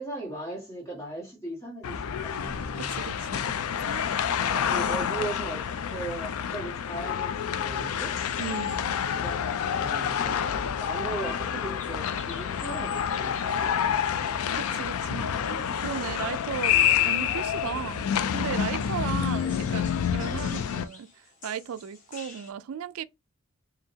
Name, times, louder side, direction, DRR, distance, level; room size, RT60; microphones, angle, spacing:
voice 1, 0.0-3.0 4.3-8.2 9.2-14.3 16.7-17.2 19.3-19.7, right 2 dB, 15° left, 1.7 m, -39 dB
sound 1, 1.8-20.9, left 8 dB, 80° left, 0.4 m, -28 dB
voice 2, 2.8-3.5 3.8-4.1 4.7-4.8 8.4-9.0 14.5-16.8 17.0-18.0 18.3-21.1 21.4-23.0, right 8 dB, 75° right, 0.3 m, -36 dB
sound 2, 8.0-22.5, left 4 dB, 35° left, 1.0 m, -50 dB
5.0 x 2.7 x 2.7 m
head